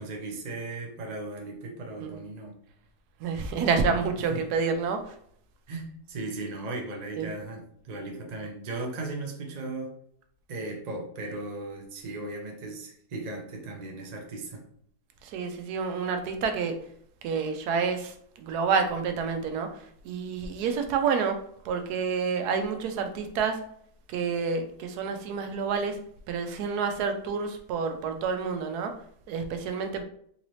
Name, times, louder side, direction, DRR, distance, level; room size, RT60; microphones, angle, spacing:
voice 1, 0.0-2.5 4.2-4.5 5.7-9.9 10.5-14.6, right 2 dB, 50° right, 1 dB, 0.5 m, -37 dB
voice 2, 3.2-5.1 7.2-7.3 15.2-16.8 17.2-19.7 20.0-21.4 21.6-23.6 24.1-26.0 26.3-28.9 29.3-30.0, right 5 dB, 80° right, 6 dB, 1.1 m, -28 dB
3.9 x 2.7 x 3.0 m, 0.66 s
omnidirectional pair, 1.7 m